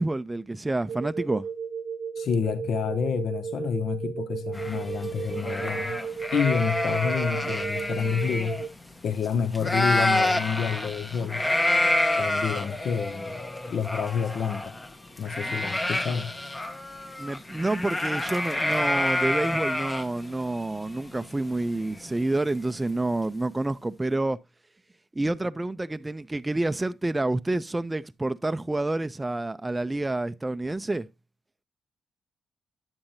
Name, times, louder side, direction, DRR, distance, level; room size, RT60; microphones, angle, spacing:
voice 1, 0.0-1.5 17.2-24.4 25.1-31.1, right 2 dB, 15° right, 0.3 m, -28 dB
sound 1, 0.9-8.7, right 6 dB, 75° right, 0.7 m, -34 dB
voice 2, 2.2-6.0 6.3-8.6 9.0-11.5 12.2-14.7 15.2-16.3 25.3-25.4, left 7 dB, 70° left, 0.5 m, -29 dB
sound 2, 4.5-9.3 9.5-22.5, left 1 dB, 20° left, 0.7 m, -28 dB
8.8 x 7.1 x 2.6 m
cardioid pair, 80°, 0 cm